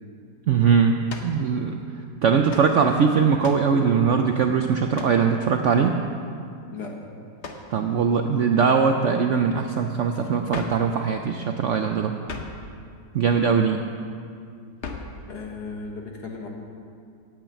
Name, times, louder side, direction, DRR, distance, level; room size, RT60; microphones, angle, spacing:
voice 1, 0.5-1.8 2.2-6.0 7.7-12.1 13.1-13.9, right 6 dB, 75° right, 5 dB, 0.7 m, -21 dB
sound 1, 1.1-1.4 2.5-2.7 3.4-3.7 4.9-5.2 7.4-7.7 10.5-10.9 12.3-12.6 14.8-15.2, left 4 dB, 50° left, 1.1 m, -36 dB
voice 2, 15.3-16.5, left 4 dB, 65° left, 1 dB, 1.9 m, -35 dB
8.9 x 8.9 x 8.2 m, 2.3 s
omnidirectional pair, 1.9 m